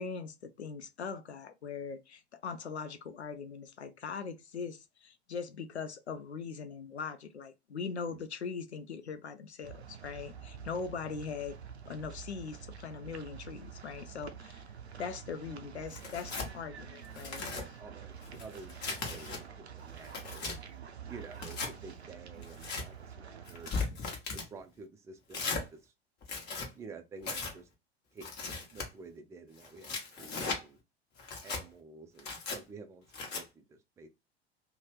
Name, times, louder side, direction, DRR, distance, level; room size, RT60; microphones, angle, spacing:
voice 1, 0.0-11.6 11.9-14.6 15.0-17.4, left 5 dB, 85° left, 0.5 m, -41 dB
sound 1, 9.6-23.7, right 7 dB, 85° right, 0.5 m, -48 dB
Tearing, 15.9-16.5 17.0-17.6 18.2-19.4 19.9-20.6 21.3-21.7 22.4-22.8 23.5-24.5 25.3-25.6 26.2-26.7 27.2-27.5 28.2-28.9 29.6-30.6 31.2-31.6 32.2-32.6 33.1-33.4, left 4 dB, 35° left, 1.0 m, -37 dB
voice 2, 17.5-20.5 21.1-23.8 24.3-25.9 26.7-27.7 28.1-28.3 28.7-30.8 31.4-34.1, right 4 dB, 10° right, 0.4 m, -50 dB
2.7 x 2.1 x 3.1 m
figure-of-eight pair, 80°, 32 cm